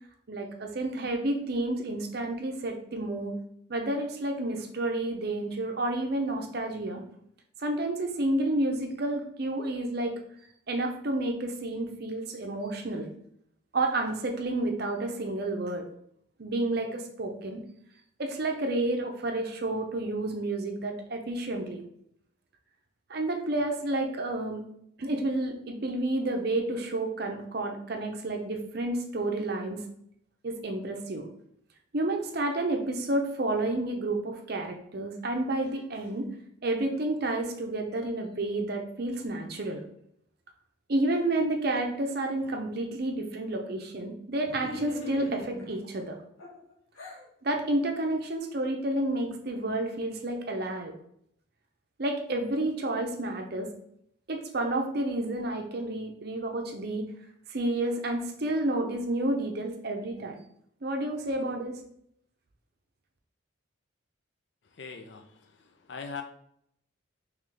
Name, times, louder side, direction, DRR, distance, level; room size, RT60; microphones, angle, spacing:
voice 1, 0.3-3.4 3.7-7.0 7.6-10.1 10.7-13.1 13.7-15.8 16.4-17.6 18.2-21.8 23.1-24.6 25.0-29.8 30.4-31.3 31.9-36.3 36.6-39.8 40.9-46.2 47.4-50.9 52.0-53.7 54.3-57.1 57.5-60.4 60.8-61.8, right 2 dB, 50° right, 3 dB, 0.6 m, -30 dB
sound 1, 44.4-45.8 46.4-47.2, left 1 dB, 80° left, 1.1 m, -39 dB
voice 2, 64.7-66.2, left 5 dB, 55° left, 6 dB, 0.5 m, -41 dB
3.8 x 3.1 x 3.3 m, 0.71 s
head